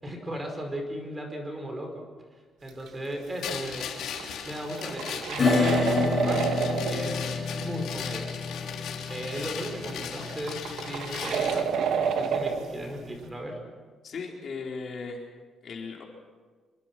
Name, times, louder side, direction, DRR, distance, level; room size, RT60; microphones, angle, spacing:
voice 1, 0.0-2.0 2.6-4.0 4.4-6.5 6.9-7.2 7.6-8.3 9.1-13.6, equal, 15° right, 4 dB, 5.2 m, -36 dB
sound 1, 2.7-2.9 3.1-3.2 4.0-7.1 7.7-7.8 8.4-8.5 9.6-9.7 9.9-12.7, right 6 dB, 80° right, 2.1 m, -29 dB
sound 2, 3.4-11.7, left 8 dB, 85° left, 3.4 m, -38 dB
Acoustic guitar / Strum, 5.4-12.6, left 5 dB, 35° left, 7.7 m, -30 dB
voice 2, 14.0-15.2 15.6-16.0, left 4 dB, 50° left, -1 dB, 4.3 m, -37 dB
26.5 x 23.5 x 6.2 m, 1.4 s
cardioid pair, 135°, 0 cm